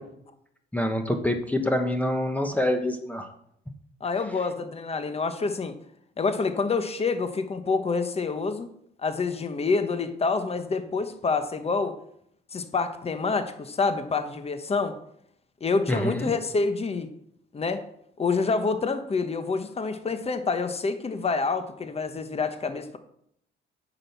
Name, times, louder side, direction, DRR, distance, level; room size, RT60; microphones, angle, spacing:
voice 1, 0.7-3.3 15.9-16.3, left 1 dB, 5° left, 4 dB, 1.1 m, -26 dB
voice 2, 4.0-5.7 6.2-8.7 9.0-11.9 12.5-14.9 15.6-17.1 17.5-17.8 18.2-23.0, left 4 dB, 30° left, 9 dB, 1.1 m, -27 dB
8.7 x 6.3 x 5.8 m, 0.71 s
cardioid pair, 90°, 20 cm